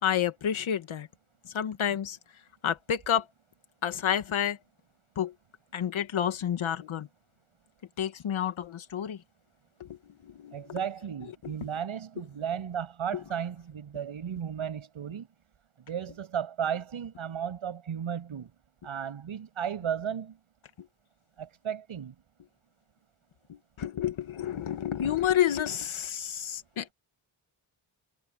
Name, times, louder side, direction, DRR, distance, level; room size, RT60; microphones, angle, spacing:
voice 1, 0.0-1.1 1.5-2.2 2.6-3.2 3.8-4.6 5.2-5.3 5.7-7.1 8.0-9.2 10.4-10.5 23.8-26.9, left 9 dB, 80° left, 1.8 m, -29 dB
voice 2, 10.5-15.3 15.9-18.5 18.8-20.4 21.4-22.1, right 8 dB, 90° right, 8.0 m, -34 dB
wide cardioid pair, 145°, 47 cm